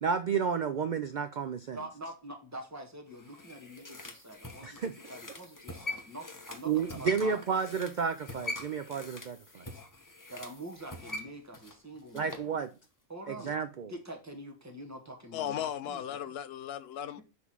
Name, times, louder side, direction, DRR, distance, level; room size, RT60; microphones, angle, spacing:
voice 1, 0.0-1.8 4.6-4.9 6.7-9.6 12.1-12.7 13.3-13.9, right 6 dB, 80° right, 0.4 m, -31 dB
voice 2, 1.7-7.4 10.3-12.6 13.1-13.5 13.9-16.0 17.2-17.3, right 1 dB, 10° right, 1.4 m, -45 dB
sound 1, 3.1-12.5 12.8-12.9, left 2 dB, 15° left, 0.8 m, -43 dB
voice 3, 15.3-17.2, left 10 dB, 60° left, 0.7 m, -36 dB
6.0 x 3.8 x 5.9 m
omnidirectional pair, 1.4 m